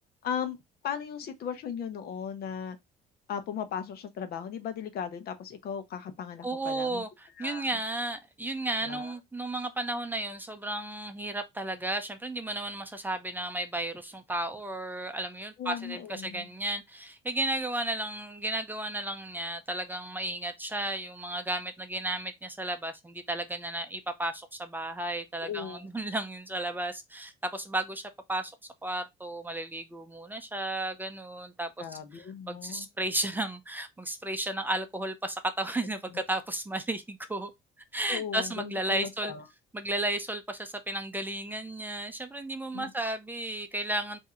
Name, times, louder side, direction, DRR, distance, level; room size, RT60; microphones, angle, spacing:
voice 1, 0.2-0.6 0.8-2.8 3.3-7.0 7.4-7.8 8.8-9.1 15.6-16.5 25.4-25.9 31.8-32.9 36.1-36.3 38.1-39.4 42.7-42.9, left 8 dB, 65° left, 0.9 m, -37 dB
voice 2, 6.4-28.5 28.8-37.5 37.9-39.3 39.7-44.2, right 1 dB, 10° right, 0.6 m, -33 dB
3.6 x 2.8 x 4.3 m
cardioid pair, 110°, 17 cm